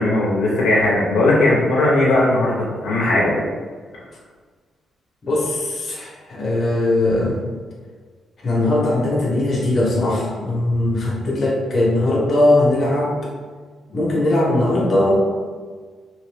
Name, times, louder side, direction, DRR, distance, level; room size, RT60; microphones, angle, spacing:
voice 1, 0.0-3.4, left 2 dB, 85° left, -5 dB, 0.7 m, -18 dB
voice 2, 5.2-7.4 8.4-13.1 13.9-15.2, left 1 dB, 45° left, -4 dB, 1.0 m, -19 dB
3.0 x 2.5 x 3.4 m, 1.5 s
cardioid pair, 85°, 0 cm